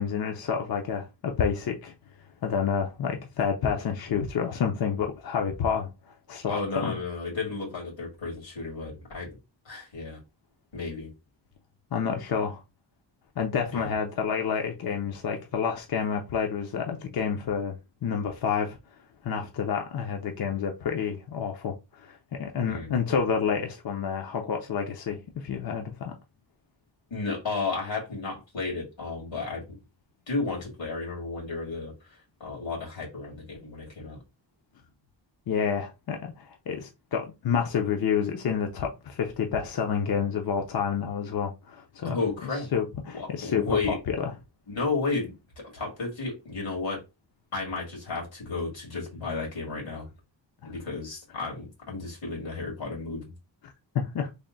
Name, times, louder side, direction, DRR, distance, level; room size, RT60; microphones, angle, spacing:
voice 1, 0.0-1.9 2.4-5.9 6.3-6.9 11.9-12.6 13.4-17.8 18.0-18.8 19.2-21.7 22.0-26.1 35.5-42.2 42.7-44.3 50.6-50.7 53.9-54.3, left 7 dB, 55° left, 0.6 m, -29 dB
voice 2, 6.5-9.4 9.7-10.2 10.7-11.1 13.7-13.9 22.7-22.9 27.1-29.8 30.3-34.2 42.0-42.7 43.1-44.0 44.7-45.3 45.7-47.0 47.5-50.1 50.6-53.3, left 3 dB, 85° left, 2.0 m, -33 dB
3.4 x 2.1 x 3.8 m
wide cardioid pair, 110°, 44 cm